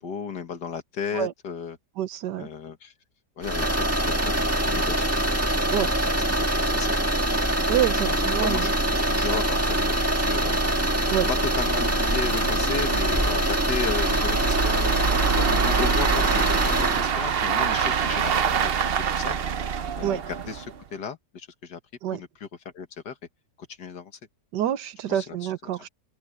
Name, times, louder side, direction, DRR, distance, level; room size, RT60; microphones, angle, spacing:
voice 1, 0.0-1.8 2.4-2.9 3.4-3.9 4.2-5.3 5.8-7.0 8.0-10.8 11.3-15.0 15.4-18.7 19.1-19.4 20.0-21.8 22.1-22.5 22.7-23.2 23.6-24.2 25.1-25.4, left 6 dB, 80° left, 2.2 m, -34 dB
voice 2, 2.0-2.5 5.7-5.9 7.7-8.7 11.1-11.3 20.0-20.2 22.0-22.2 24.5-25.9, right 11 dB, 90° right, 1.5 m, -27 dB
sound 1, 3.4-17.1, right 1 dB, 10° right, 1.6 m, -24 dB
sound 2, 6.7-20.8, right 7 dB, 50° right, 0.8 m, -28 dB
omnidirectional pair, 1.8 m